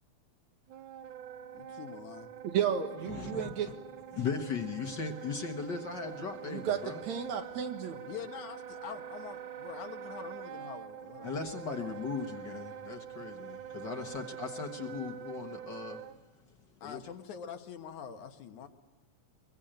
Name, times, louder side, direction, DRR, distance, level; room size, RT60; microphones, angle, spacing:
Wind instrument woodwind instrument, 0.7-16.2, right 9 dB, 90° right, 2.5 m, -45 dB
voice 1, 1.5-2.3 8.1-11.3 13.8-14.1 16.8-18.7, left 7 dB, 80° left, 6 dB, 2.8 m, -45 dB
voice 2, 2.4-3.7 6.4-8.1, right 8 dB, 70° right, 6 dB, 2.9 m, -33 dB
voice 3, 3.1-3.7 4.1-7.1 11.2-16.0 16.5-17.0, left 5 dB, 45° left, 5 dB, 1.6 m, -38 dB
24.0 x 22.5 x 8.9 m, 1.2 s
omnidirectional pair, 3.4 m